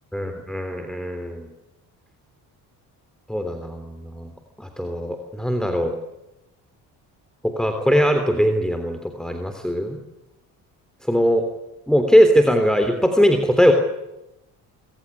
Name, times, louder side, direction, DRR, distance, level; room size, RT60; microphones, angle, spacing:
voice 1, 0.1-1.5 3.3-4.3 4.6-6.0 7.4-10.0 11.1-11.5 11.9-13.7, equal, ahead, 6 dB, 3.5 m, -20 dB
25.0 x 17.5 x 10.0 m, 0.93 s
hypercardioid pair, 55°, 48 cm